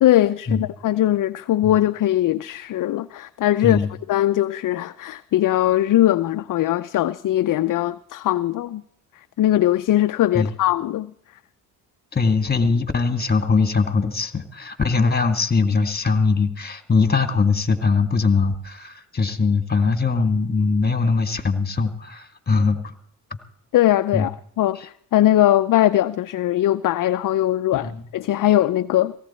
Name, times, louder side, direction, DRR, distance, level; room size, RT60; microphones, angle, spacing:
voice 1, 0.0-3.8 4.1-8.8 9.4-11.1 23.7-29.1, left 13 dB, 50° left, 0.6 m, -20 dB
voice 2, 12.1-22.9 24.1-24.3 27.7-28.0, left 4 dB, 20° left, 2.0 m, -21 dB
17.5 x 16.0 x 4.3 m
supercardioid pair, 60°, 43 cm